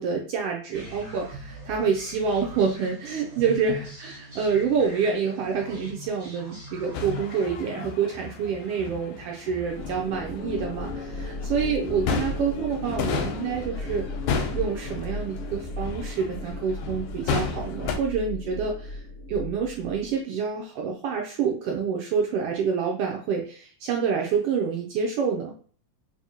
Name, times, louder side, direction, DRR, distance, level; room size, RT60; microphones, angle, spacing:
voice 1, 0.0-14.0 14.5-19.0 19.3-25.5, right 6 dB, 90° right, 0 dB, 1.3 m, -27 dB
sound 1, 0.7-7.5, right 1 dB, 45° right, 1.9 m, -41 dB
sound 2, 6.9-18.0, left 5 dB, 85° left, 2.1 m, -33 dB
sound 3, 9.6-20.1, left 2 dB, 50° left, 1.1 m, -35 dB
5.0 x 2.6 x 2.8 m, 0.43 s
omnidirectional pair, 3.4 m